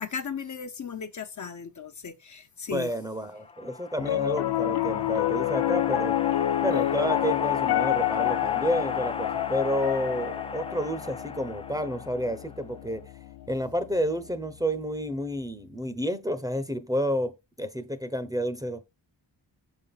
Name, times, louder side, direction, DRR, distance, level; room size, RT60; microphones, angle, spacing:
voice 1, 0.0-2.9, left 6 dB, 40° left, 1.0 m, -36 dB
voice 2, 2.7-6.2 6.6-13.0 13.5-18.8, equal, 10° right, 0.9 m, -30 dB
sound 1, 3.2-12.7, left 4 dB, 15° left, 0.3 m, -37 dB
Piano, 4.0-14.4, left 14 dB, 65° left, 0.6 m, -28 dB
6.6 x 5.5 x 4.2 m
cardioid pair, 95°, 43 cm